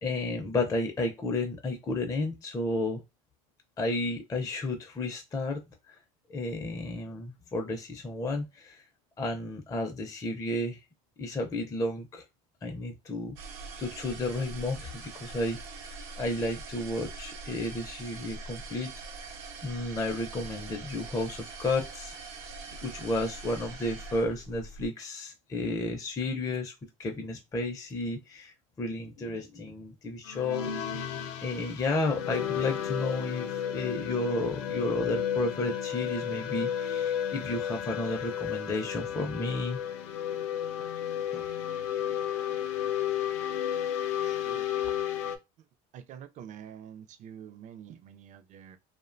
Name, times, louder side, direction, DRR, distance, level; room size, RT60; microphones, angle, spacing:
voice 1, 0.0-3.0 3.8-5.6 5.9-6.0 6.3-8.8 9.2-10.8 11.2-12.2 12.6-13.4 13.8-15.9 16.2-18.9 19.2-19.3 19.6-22.1 22.8-26.7 27.0-30.7 31.4-39.8 41.3-41.4, left 2 dB, 20° left, 0.4 m, -32 dB
sound 1, 13.4-24.9, right 3 dB, 90° right, 0.7 m, -43 dB
sound 2, 30.3-45.4, left 9 dB, 80° left, 0.5 m, -32 dB
voice 2, 44.2-45.0 45.9-48.8, right 9 dB, 45° right, 0.4 m, -47 dB
2.7 x 2.1 x 2.5 m
supercardioid pair, 110°, 18 cm